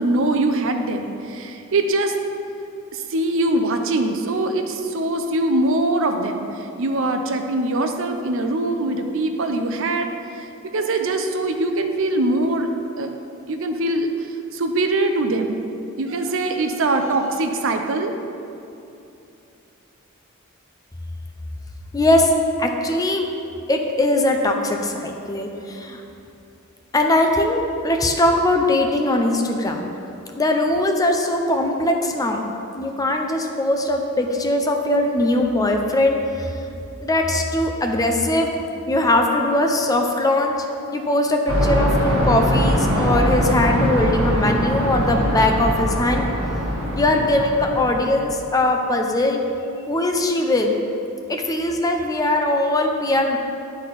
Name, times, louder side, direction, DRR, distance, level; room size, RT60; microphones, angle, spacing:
voice 1, 0.0-2.1 2.9-10.1 10.3-10.5 10.7-12.7 13.0-13.1 13.5-14.3 14.5-15.6 16.0-18.1, right 2 dB, 65° right, 6 dB, 0.6 m, -22 dB
voice 2, 21.9-22.3 22.6-23.3 23.7-26.0 26.9-29.9 30.4-32.4 32.7-36.5 37.0-40.6 40.9-46.3 47.0-49.4 49.9-50.8 51.3-53.4, left 1 dB, 15° left, 3 dB, 0.5 m, -20 dB
sound 1, 41.5-48.3, equal, 85° right, 1.2 m, -22 dB
10.5 x 4.1 x 4.1 m, 2.8 s
head